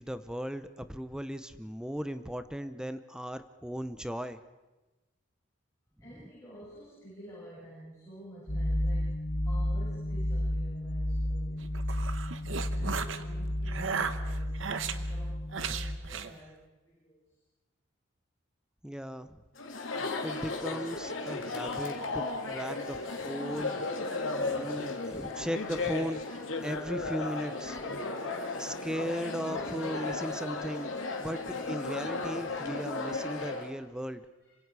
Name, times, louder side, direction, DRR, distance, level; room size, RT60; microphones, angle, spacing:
voice 1, 0.0-4.4 18.8-19.4 20.2-22.2 22.5-24.1 24.4-27.8 28.6-31.4 31.7-34.2, equal, 5° right, 11 dB, 0.7 m, -37 dB
voice 2, 6.0-11.8 12.7-17.4 34.4-34.6, right 1 dB, 15° left, -9 dB, 8.0 m, -51 dB
sound 1, 8.5-16.0, left 1 dB, 40° left, 2.5 m, -32 dB
sound 2, 11.6-13.2 13.7-15.0 15.5-16.3, right 5 dB, 75° right, 1.1 m, -35 dB
Chatter, 19.6-33.7, left 3 dB, 75° left, 2.9 m, -35 dB
26.5 x 25.0 x 4.8 m, 1.1 s
head